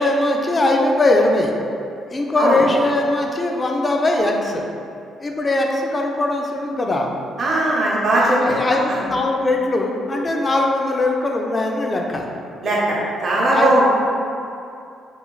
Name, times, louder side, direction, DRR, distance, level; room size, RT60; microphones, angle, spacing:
voice 1, 0.0-1.5 2.1-4.6 5.2-7.1 8.2-12.3 13.5-13.8, left 2 dB, 30° left, 1 dB, 0.3 m, -20 dB
voice 2, 7.4-8.4 8.9-9.0 12.6-13.0 13.2-13.8, right 1 dB, 50° right, -5 dB, 0.6 m, -18 dB
3.1 x 2.3 x 2.3 m, 2.5 s
cardioid pair, 90°, 0 cm